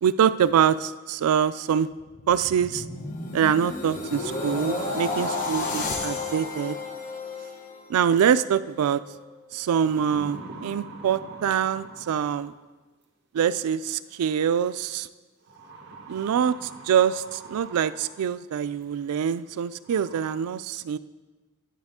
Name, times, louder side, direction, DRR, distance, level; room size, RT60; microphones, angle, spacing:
voice 1, 0.0-1.9 2.3-2.8 3.3-6.8 7.9-9.0 9.5-12.5 13.3-15.1 16.1-21.0, right 8 dB, 85° right, 15 dB, 0.3 m, -24 dB
sound 1, 2.0-8.2 8.6-8.9, left 3 dB, 35° left, 0.8 m, -32 dB
sound 2, 3.2-3.3 3.8-7.2 8.6-9.0 9.8-12.6 13.8-13.9 15.5-18.3 18.8-18.9 19.5-19.6 19.8-20.3, right 2 dB, 50° right, 1.3 m, -43 dB
10.5 x 7.4 x 3.6 m, 1.2 s
head